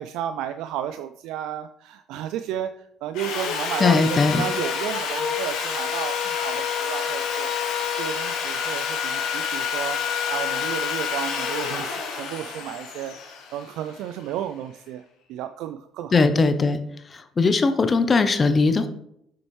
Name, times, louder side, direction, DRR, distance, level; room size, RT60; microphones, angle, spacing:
voice 1, 0.0-7.5 8.0-10.0 10.3-15.0 15.3-16.2, right 11 dB, 75° right, 10 dB, 0.3 m, -33 dB
Sawing, 3.1-14.2, left 7 dB, 75° left, 1.5 m, -28 dB
voice 2, 3.8-4.4 16.1-16.8 17.1-18.9, left 4 dB, 35° left, 10 dB, 0.7 m, -19 dB
7.5 x 6.3 x 3.2 m, 0.73 s
supercardioid pair, 70°, 0 cm